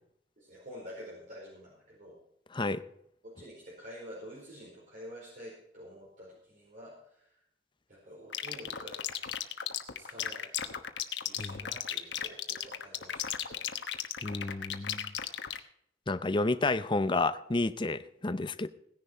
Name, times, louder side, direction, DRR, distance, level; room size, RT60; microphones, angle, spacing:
voice 1, 0.4-2.2 3.2-6.9 7.2-7.3 7.9-9.0 10.0-10.9 11.1-13.6, equal, 50° right, -5 dB, 4.7 m, -48 dB
voice 2, 2.5-2.8 11.4-11.6 14.2-15.1 16.1-18.7, left 2 dB, 30° left, 13 dB, 0.7 m, -30 dB
sound 1, 8.3-15.6, left 9 dB, 90° left, 1.2 m, -35 dB
17.5 x 10.5 x 4.4 m, 0.73 s
head